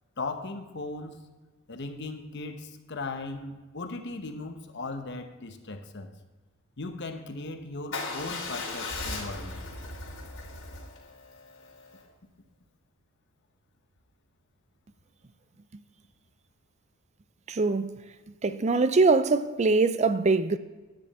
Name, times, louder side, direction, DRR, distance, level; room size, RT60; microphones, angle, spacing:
voice 1, 0.2-1.2 1.7-6.1 6.8-9.6, left 3 dB, 55° left, 1.0 m, -37 dB
Motorcycle / Engine starting / Idling, 7.9-12.0, left 3 dB, 75° left, 3.2 m, -37 dB
voice 2, 17.5-18.0 18.4-20.6, right 3 dB, 30° right, 0.4 m, -23 dB
10.5 x 9.6 x 4.2 m
head